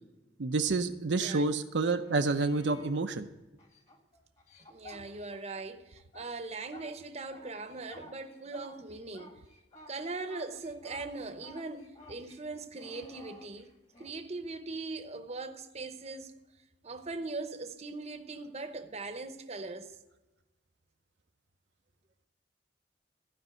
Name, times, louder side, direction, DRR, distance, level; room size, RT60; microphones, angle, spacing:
voice 1, 0.4-3.3, right 3 dB, 75° right, 0.6 m, -29 dB
sound 1, 1.7-3.0 3.6-5.6 6.0-14.2 16.9-17.0, left 1 dB, 40° left, 1.8 m, -53 dB
voice 2, 4.7-9.4 9.9-13.7 14.0-16.3 16.8-19.9, right 3 dB, 35° right, 0.8 m, -40 dB
14.5 x 5.3 x 7.8 m
head